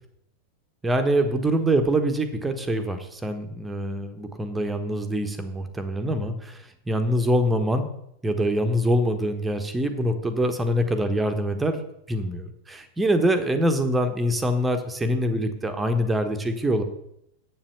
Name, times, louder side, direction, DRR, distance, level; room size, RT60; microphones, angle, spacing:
voice 1, 0.8-6.6 6.9-7.9 8.2-11.8 12.1-16.8, equal, 10° right, 7 dB, 1.3 m, -24 dB
8.1 x 7.4 x 6.7 m, 0.78 s
figure-of-eight pair, 90°, 0 cm